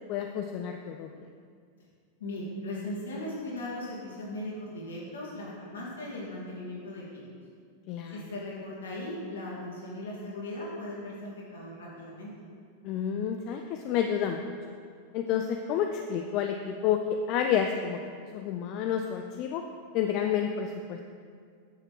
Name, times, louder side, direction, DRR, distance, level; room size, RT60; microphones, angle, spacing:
voice 1, 0.1-1.1 7.9-8.2 12.8-14.5 15.1-17.0 17.3-19.6 19.9-21.0, left 8 dB, 40° left, 5 dB, 0.5 m, -30 dB
voice 2, 2.2-7.2 8.1-12.3, left 1 dB, 65° left, -5 dB, 2.6 m, -38 dB
9.4 x 6.7 x 4.6 m, 2.1 s
figure-of-eight pair, 90°, 0 cm